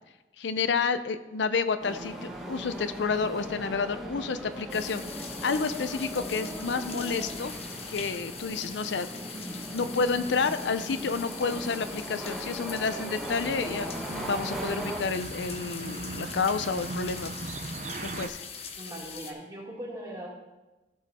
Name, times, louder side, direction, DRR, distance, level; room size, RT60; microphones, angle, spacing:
voice 1, 0.4-7.5 7.9-17.3 18.0-18.4, left 5 dB, 75° left, 12 dB, 0.5 m, -30 dB
sound 1, 1.8-15.0, right 1 dB, ahead, 1.2 m, -38 dB
sound 2, 4.7-19.3, left 6 dB, 35° left, 0.7 m, -42 dB
sound 3, 12.4-18.3, right 3 dB, 40° right, 0.5 m, -39 dB
voice 2, 18.8-20.3, right 1 dB, 20° right, -4 dB, 2.3 m, -40 dB
15.0 x 5.2 x 4.2 m, 1.1 s
head